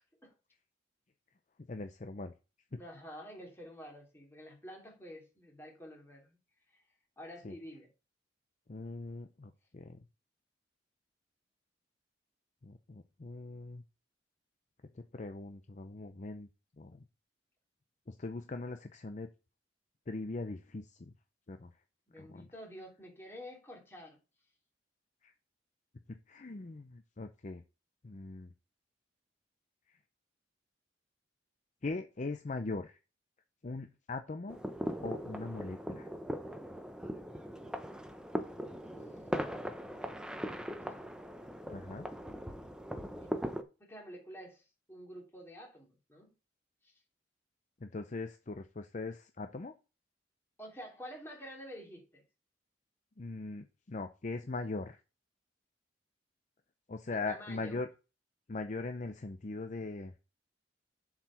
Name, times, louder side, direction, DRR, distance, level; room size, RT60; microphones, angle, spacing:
voice 1, 1.7-2.3 2.7-2.8 7.4-7.5 8.7-10.0 12.6-13.8 15.1-16.5 16.8-17.0 18.1-19.3 20.1-21.1 21.5-21.7 22.2-22.5 25.2-25.3 26.1-27.6 28.0-28.5 31.8-33.0 33.6-34.7 35.0-36.1 41.7-42.1 47.8-49.7 53.2-55.0 56.9-57.9 58.5-60.1, left 3 dB, 40° left, 0.6 m, -40 dB
voice 2, 2.8-6.4 6.7-6.8 7.2-7.9 22.1-24.2 38.8-39.5 43.2-43.3 43.8-44.6 44.9-46.3 46.8-46.9 50.6-52.2 57.1-57.8, equal, 15° left, 3.0 m, -49 dB
sound 1, 34.5-43.6, equal, 5° right, 0.8 m, -40 dB
7.3 x 4.8 x 5.6 m
head